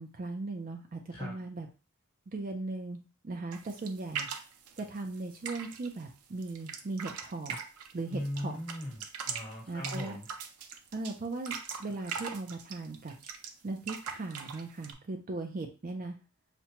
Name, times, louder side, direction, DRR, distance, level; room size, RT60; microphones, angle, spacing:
voice 1, 0.0-1.7 2.3-4.3 4.8-7.6 7.9-8.6 9.7-10.2 10.9-13.1 13.6-16.2, right 3 dB, 40° right, 3 dB, 0.4 m, -38 dB
sound 1, 3.5-6.0 6.4-8.4 8.7-13.5 13.8-14.9, right 6 dB, 90° right, 0.5 m, -40 dB
voice 2, 8.1-10.3, left 1 dB, 20° left, -3 dB, 1.3 m, -38 dB
5.8 x 2.2 x 2.9 m, 0.33 s
head